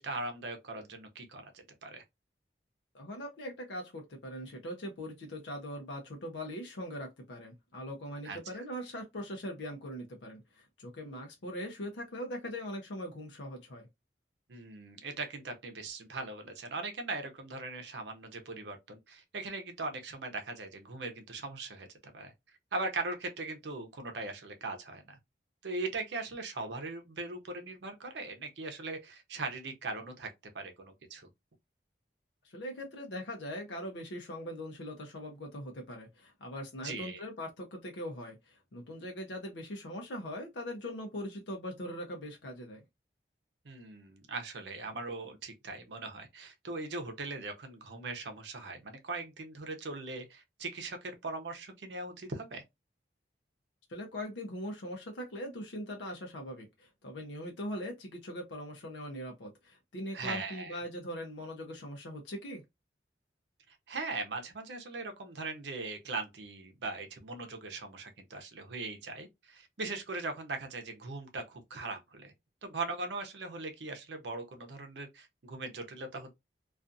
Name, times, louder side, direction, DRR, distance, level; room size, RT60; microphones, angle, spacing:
voice 1, 0.0-2.0 8.2-8.6 14.5-21.9 22.1-22.3 22.7-25.2 25.6-31.3 36.8-37.2 43.6-52.6 60.1-60.8 63.7-72.3 72.6-76.3, right 3 dB, 80° right, 0.7 m, -40 dB
voice 2, 2.9-13.9 32.4-42.8 53.9-62.6, equal, 85° left, 0.6 m, -41 dB
2.4 x 2.4 x 2.5 m
head